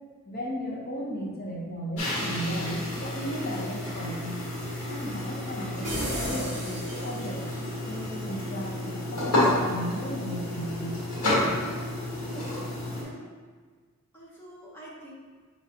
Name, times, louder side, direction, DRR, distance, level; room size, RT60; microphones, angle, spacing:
voice 1, 0.2-4.5 4.9-7.5 7.8-11.0, equal, 45° left, -3 dB, 0.8 m, -35 dB
Boiling water (Xlr), 2.0-13.0, left 1 dB, 85° left, 1.3 m, -31 dB
sound 1, 5.8-7.7, equal, 30° right, 1.1 m, -34 dB
voice 2, 12.2-12.7 12.9-13.3 14.1-15.1, right 1 dB, 10° left, -5 dB, 0.7 m, -46 dB
5.2 x 3.1 x 2.7 m, 1.5 s
head